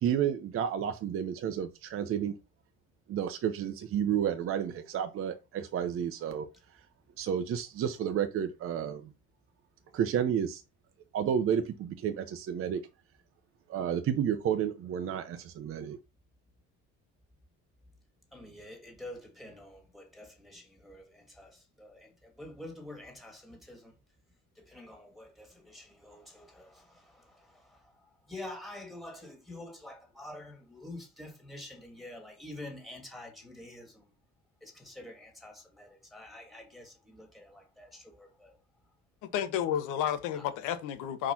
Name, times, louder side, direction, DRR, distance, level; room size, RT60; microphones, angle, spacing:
voice 1, 0.0-2.4 3.1-6.5 7.2-9.1 9.9-10.6 11.1-12.8 13.7-16.0, right 9 dB, 45° right, 0.9 m, -31 dB
voice 2, 18.3-24.0 24.6-34.1 34.6-38.6 38.9-39.0 40.3-40.8, left 1 dB, ahead, 2.0 m, -48 dB
voice 3, 39.3-41.3, left 9 dB, 85° left, 1.4 m, -31 dB
4.9 x 4.4 x 5.9 m
cardioid pair, 145°, 31 cm